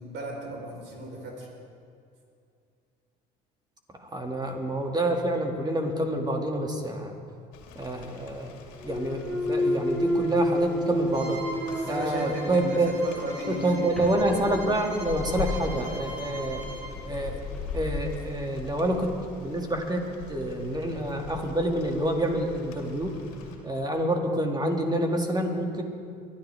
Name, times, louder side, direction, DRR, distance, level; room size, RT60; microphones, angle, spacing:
voice 1, 0.0-1.5 11.7-14.2, right 1 dB, 60° right, -1 dB, 4.7 m, -36 dB
voice 2, 4.0-7.1 7.8-8.5 8.8-11.4 11.9-13.0 13.5-16.6 17.0-17.4 17.7-23.1 23.6-25.8, right 1 dB, 20° right, 2 dB, 2.5 m, -27 dB
Rain, 7.5-23.6, left 5 dB, 75° left, 2.4 m, -41 dB
Thump thud, 8.8-12.8 13.3-18.0, left 1 dB, ahead, 2.1 m, -32 dB
Bowed string instrument, 11.1-16.9, right 1 dB, 80° right, 3.1 m, -42 dB
23.0 x 12.5 x 3.7 m, 2.4 s
hypercardioid pair, 60°, 20 cm